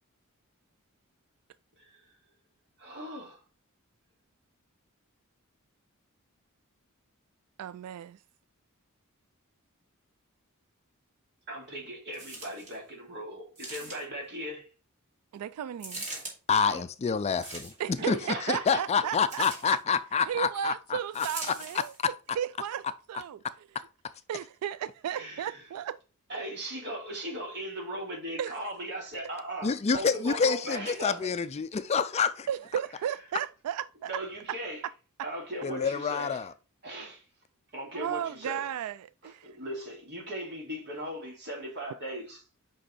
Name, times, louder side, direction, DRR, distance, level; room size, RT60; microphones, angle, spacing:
voice 1, 2.8-3.4 11.5-14.7 16.6-16.8 18.0-18.9 25.1-25.6 26.3-31.2 34.1-34.8 35.2-36.5 36.8-37.2 37.7-38.7 39.2-42.4, right 1 dB, 50° right, 2.7 m, -38 dB
voice 2, 7.6-8.2 15.3-16.1 17.8-19.4 20.3-21.9 22.3-23.4 24.3-26.0 28.4-28.7 32.5-34.1 37.9-39.5, right 9 dB, 85° right, 0.3 m, -34 dB
sound 1, 12.1-12.8 13.6-14.3 15.8-16.4 17.3-18.0 19.3-19.8 21.1-22.0 22.7-22.8, right 2 dB, 35° right, 2.7 m, -41 dB
voice 3, 16.5-17.7 18.1-18.2 18.4-21.3 22.0-22.1 29.6-32.5 35.6-36.5, left 5 dB, 30° left, 0.3 m, -27 dB
5.4 x 5.3 x 4.2 m
head